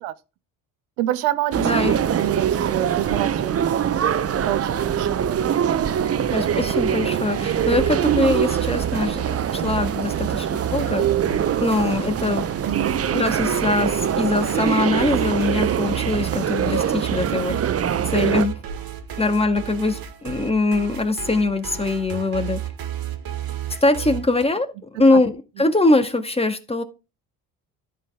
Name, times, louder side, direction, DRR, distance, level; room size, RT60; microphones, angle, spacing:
voice 1, 1.0-4.1 4.4-5.2 12.6-12.9, right 14 dB, 80° right, 1.0 m, -27 dB
sound 1, 1.5-18.5, right 9 dB, 35° right, 0.7 m, -23 dB
voice 2, 1.6-2.0 6.3-11.0 11.6-12.5 13.0-17.6 18.1-18.6 19.2-22.6 23.8-26.8, left 2 dB, 15° left, 1.9 m, -22 dB
sound 2, 7.6-24.4, right 9 dB, 55° right, 1.8 m, -32 dB
14.0 x 4.7 x 3.5 m
hypercardioid pair, 55°, 43 cm